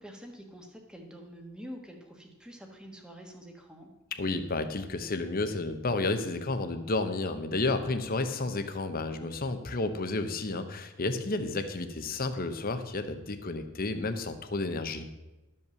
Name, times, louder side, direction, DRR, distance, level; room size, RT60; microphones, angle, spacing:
voice 1, 0.0-3.9, equal, 5° right, 2 dB, 1.4 m, -46 dB
voice 2, 4.1-15.1, left 2 dB, 40° left, 8 dB, 0.8 m, -31 dB
12.5 x 5.5 x 6.9 m, 1.0 s
head